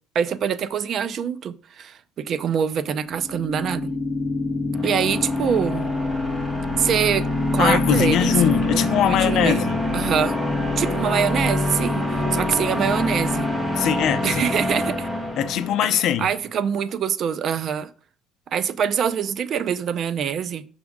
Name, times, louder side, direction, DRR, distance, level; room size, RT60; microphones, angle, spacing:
voice 1, 0.1-3.9 4.8-5.9 6.8-7.3 7.5-8.3 8.7-8.8 9.0-9.6 9.9-10.3 10.8-13.5 14.2-15.1 15.9-17.9 18.5-20.7, right 8 dB, 35° right, 0.4 m, -24 dB
sound 1, 3.1-16.1, left 2 dB, 5° right, 1.0 m, -25 dB
voice 2, 7.6-9.8 13.7-14.4 15.4-16.3, left 10 dB, 50° left, 0.6 m, -21 dB
6.1 x 4.9 x 3.5 m
cardioid pair, 155°, 0 cm